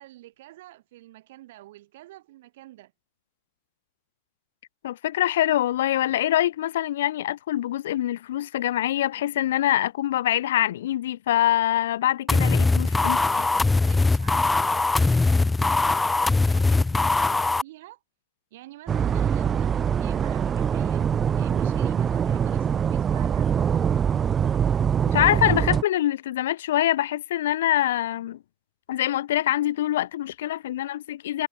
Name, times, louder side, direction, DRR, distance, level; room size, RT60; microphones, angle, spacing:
voice 1, 0.0-2.9 12.7-18.0 18.5-23.5, right 16 dB, 55° right, 6.5 m, -48 dB
voice 2, 4.8-13.2 25.1-28.4 28.9-31.5, left 13 dB, 60° left, 0.5 m, -24 dB
sound 1, 12.3-17.6, left 3 dB, 10° left, 1.1 m, -21 dB
sound 2, 18.9-25.8, right 8 dB, 20° right, 1.1 m, -23 dB
figure-of-eight pair, 90°, 0 cm